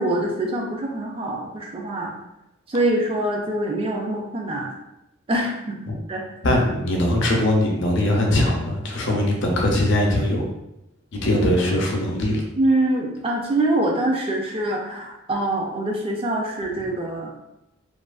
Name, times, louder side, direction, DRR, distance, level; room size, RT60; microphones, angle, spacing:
voice 1, 0.0-2.1 2.7-4.7 5.3-5.8 6.1-6.3 12.6-17.3, right 1 dB, 25° right, 0 dB, 0.4 m, -24 dB
voice 2, 6.4-10.4 11.2-12.4, left 1 dB, 60° left, 0 dB, 0.5 m, -21 dB
2.7 x 2.4 x 2.3 m, 0.88 s
head